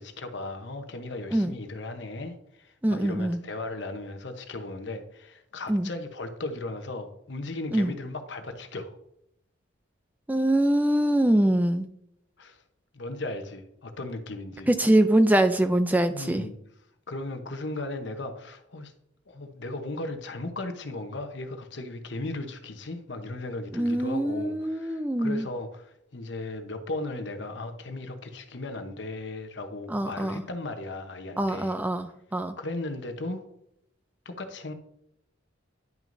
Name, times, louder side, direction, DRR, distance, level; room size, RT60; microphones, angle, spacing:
voice 1, 0.0-9.0 12.4-12.6 12.9-14.7 16.1-16.6 17.1-18.9 19.3-31.8 32.6-33.4 34.2-34.7, left 2 dB, 60° left, 7 dB, 0.9 m, -36 dB
voice 2, 2.8-3.4 5.7-5.9 7.7-7.9 10.3-11.9 14.7-16.5 23.7-25.5 29.9-30.4 31.4-32.6, right 1 dB, 10° right, 9 dB, 0.3 m, -23 dB
10.5 x 6.2 x 2.6 m, 0.75 s
head